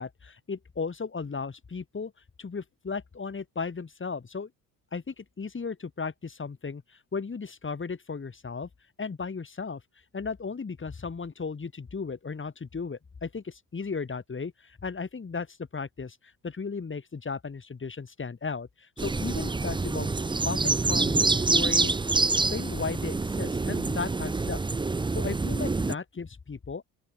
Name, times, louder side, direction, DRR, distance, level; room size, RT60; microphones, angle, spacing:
voice 1, 0.0-2.1 2.4-4.5 4.9-8.7 9.0-9.8 10.1-20.1 20.4-24.6 25.1-26.8, left 5 dB, 25° left, 3.9 m, -35 dB
sound 1, 19.0-25.9, right 3 dB, 10° right, 0.7 m, -26 dB
open air
supercardioid pair, 75°, 44 cm